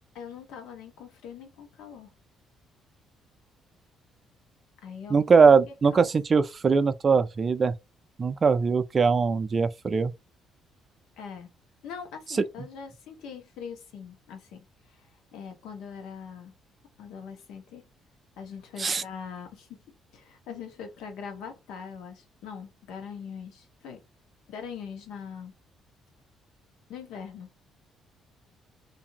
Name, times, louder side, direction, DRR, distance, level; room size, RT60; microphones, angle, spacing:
voice 1, 0.1-2.1 4.8-6.1 11.2-11.5 11.8-14.6 14.9-16.5 17.0-17.8 18.4-19.8 20.1-24.0 24.5-25.5 26.9-27.5, left 6 dB, 85° left, 1.0 m, -42 dB
voice 2, 5.1-7.7 8.2-10.1 18.8-19.0, right 5 dB, 30° right, 0.3 m, -21 dB
2.6 x 2.5 x 2.8 m
cardioid pair, 125°, 0 cm